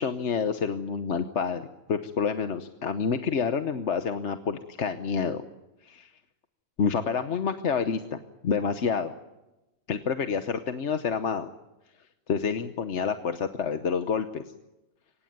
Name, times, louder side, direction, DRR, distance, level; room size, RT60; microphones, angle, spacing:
voice 1, 0.0-5.4 5.8-6.1 6.8-8.2 8.4-9.1 9.9-11.5 12.3-14.4, left 6 dB, 60° left, 8 dB, 1.3 m, -28 dB
24.5 x 19.0 x 9.3 m, 1.0 s
omnidirectional pair, 1.3 m